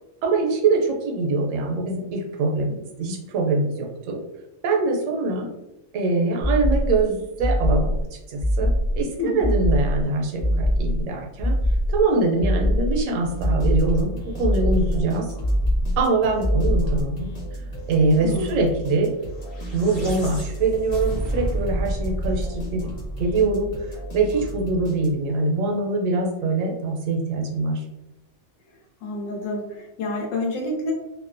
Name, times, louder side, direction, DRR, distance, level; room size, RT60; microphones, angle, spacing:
voice 1, 0.2-4.2 4.6-5.5 5.9-11.6 11.9-15.3 16.0-17.3 17.9-19.2 19.7-22.9 23.2-23.7 24.1-27.8, right 3 dB, 80° right, 1 dB, 0.9 m, -23 dB
sound 1, 6.4-7.0 7.4-8.0 8.4-9.0 9.4-10.0 10.4-11.0 11.4-12.0 12.4-13.0 13.4-14.0 14.4-15.0 15.4-16.0 16.4-17.0, equal, 25° right, 0.3 m, -22 dB
voice 2, 9.2-9.5 18.2-18.6 29.0-30.9, left 2 dB, 80° left, 1 dB, 1.1 m, -28 dB
sound 2, 13.2-25.4, right 1 dB, 50° left, 1.1 m, -35 dB
sound 3, 19.4-23.8, right 1 dB, 30° left, 0.5 m, -30 dB
2.6 x 2.1 x 2.4 m, 0.91 s
omnidirectional pair, 1.3 m